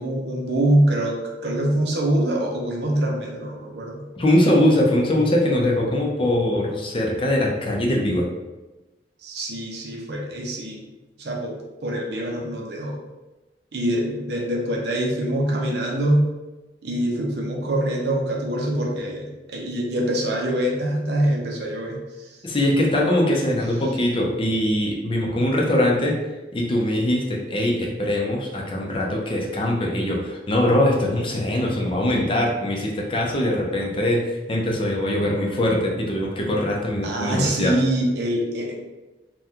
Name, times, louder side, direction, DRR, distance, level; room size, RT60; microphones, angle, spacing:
voice 1, 0.0-4.0 9.2-10.8 11.2-13.0 13.7-16.3 16.8-22.4 37.0-38.7, right 1 dB, 65° right, -1 dB, 0.6 m, -24 dB
voice 2, 4.2-8.3 22.4-26.2 26.5-34.2 34.5-37.8, left 1 dB, 30° left, -1 dB, 0.5 m, -22 dB
3.5 x 2.2 x 2.7 m, 1.1 s
head